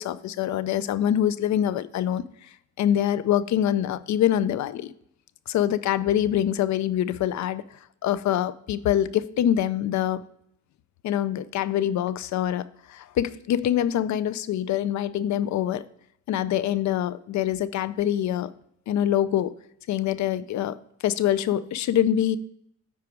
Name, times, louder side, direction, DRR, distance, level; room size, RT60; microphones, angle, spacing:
voice 1, 0.0-2.2 2.8-4.9 5.5-7.6 8.0-10.2 11.0-15.8 16.3-18.5 18.9-19.5 19.9-20.8 21.0-22.4, left 11 dB, 65° left, 16 dB, 0.6 m, -25 dB
8.5 x 4.8 x 4.6 m, 0.70 s
cardioid pair, 90°, 30 cm